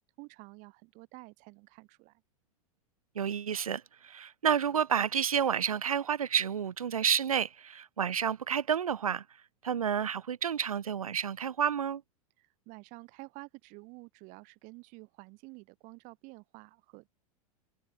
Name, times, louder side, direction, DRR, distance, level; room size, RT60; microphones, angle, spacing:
voice 1, 0.2-2.2 12.4-17.1, right 28 dB, 45° right, 3.5 m, -50 dB
voice 2, 3.1-9.2 9.6-12.0, right 8 dB, 75° right, 0.8 m, -30 dB
figure-of-eight pair, 90°, 18 cm